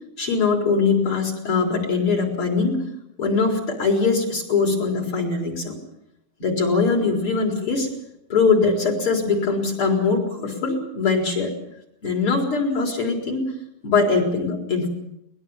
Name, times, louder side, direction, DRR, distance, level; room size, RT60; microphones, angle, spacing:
voice 1, 0.2-2.8 3.2-5.8 6.4-7.9 8.3-11.5 12.0-13.5 13.8-14.9, left 4 dB, 35° left, 2 dB, 4.9 m, -22 dB
22.5 x 20.5 x 7.3 m, 0.78 s
omnidirectional pair, 4.3 m